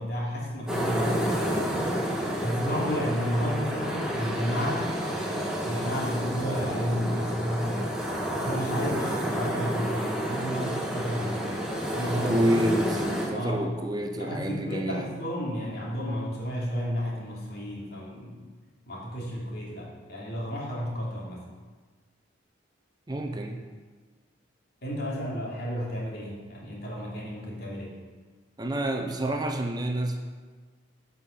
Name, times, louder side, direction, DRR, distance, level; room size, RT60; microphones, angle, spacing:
voice 1, 0.0-1.7 2.4-8.0 8.4-12.5 13.3-13.7 14.2-18.4 18.9-21.4 24.8-27.9, equal, 55° left, -4 dB, 2.9 m, -32 dB
sound 1, 0.7-13.3, equal, 5° right, 1.6 m, -30 dB
voice 2, 12.2-15.1 23.1-23.7 28.6-30.2, right 1 dB, 20° right, 4 dB, 0.7 m, -28 dB
11.5 x 5.6 x 6.6 m, 1.4 s
head